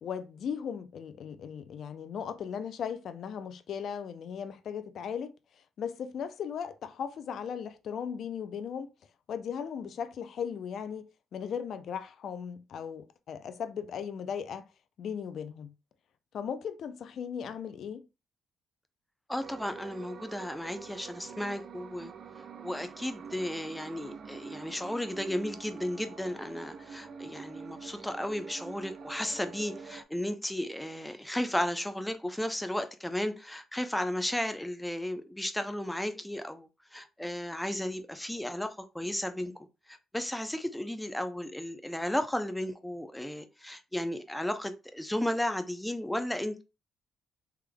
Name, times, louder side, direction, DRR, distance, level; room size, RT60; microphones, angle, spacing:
voice 1, 0.0-5.3 5.8-8.9 9.3-11.0 11.3-14.7 15.0-15.7 16.3-18.0, left 7 dB, 65° left, 0.4 m, -37 dB
voice 2, 19.3-22.1 22.6-39.5 39.9-46.6, left 1 dB, 5° left, 0.6 m, -34 dB
sound 1, 19.4-30.0, right 6 dB, 55° right, 0.4 m, -46 dB
3.4 x 3.3 x 2.2 m
cardioid pair, 90°, 0 cm